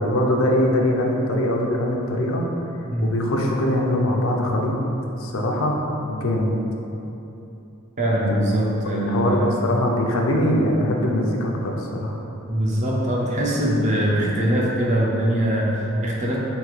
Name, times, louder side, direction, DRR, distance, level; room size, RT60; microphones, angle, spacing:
voice 1, 0.0-2.5 3.0-4.7 5.2-5.8 6.1-6.5 8.3-8.5 8.8-12.2, left 1 dB, 75° left, 0 dB, 0.5 m, -22 dB
voice 2, 8.0-9.6 12.5-16.4, right 1 dB, 35° right, -4 dB, 0.6 m, -22 dB
3.6 x 3.2 x 3.1 m, 3.0 s
head